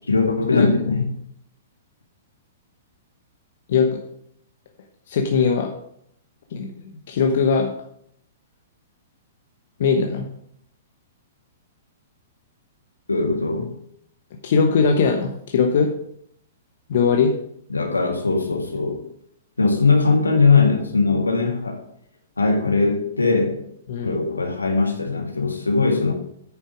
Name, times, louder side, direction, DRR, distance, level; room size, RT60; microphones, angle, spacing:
voice 1, 0.1-1.0 13.1-13.7 17.7-19.0 19.6-21.8 22.4-23.6 24.0-26.1, left 4 dB, 85° left, 3 dB, 1.9 m, -20 dB
voice 2, 3.7-4.0 5.1-5.7 6.5-6.7 7.1-7.7 9.8-10.3 14.4-15.9 16.9-17.3 23.9-24.2, left 5 dB, 55° left, 3 dB, 1.1 m, -20 dB
9.4 x 7.0 x 5.0 m, 0.70 s
figure-of-eight pair, 110°, 0 cm